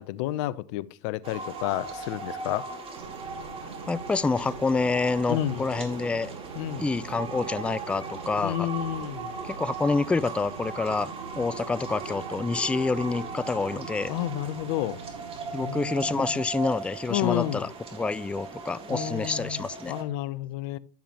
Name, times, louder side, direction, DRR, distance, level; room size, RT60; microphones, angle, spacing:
voice 1, 0.0-2.7 5.3-5.7 6.6-6.8 8.4-9.3 14.1-15.0 15.6-16.3 17.1-17.7 18.9-20.8, left 14 dB, 60° left, 0.7 m, -31 dB
sound 1, 1.2-20.0, right 4 dB, 35° right, 2.5 m, -38 dB
sound 2, 3.0-16.4, right 6 dB, 90° right, 1.0 m, -45 dB
voice 2, 3.9-6.3 6.8-8.7 9.4-14.2 15.5-19.9, left 4 dB, 5° left, 0.3 m, -28 dB
11.5 x 7.0 x 3.0 m
hypercardioid pair, 90°, 17 cm